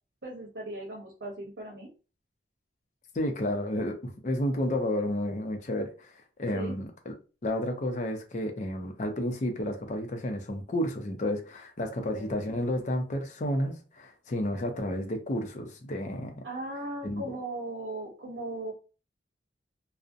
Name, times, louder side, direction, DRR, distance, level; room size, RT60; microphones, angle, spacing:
voice 1, 0.2-1.9 6.5-6.7 12.1-12.4 16.4-18.7, right 1 dB, 80° right, 0.7 m, -37 dB
voice 2, 3.1-6.1 6.4-7.1 7.4-16.4 17.0-17.3, left 1 dB, 45° left, 0.5 m, -31 dB
2.5 x 2.0 x 2.5 m
head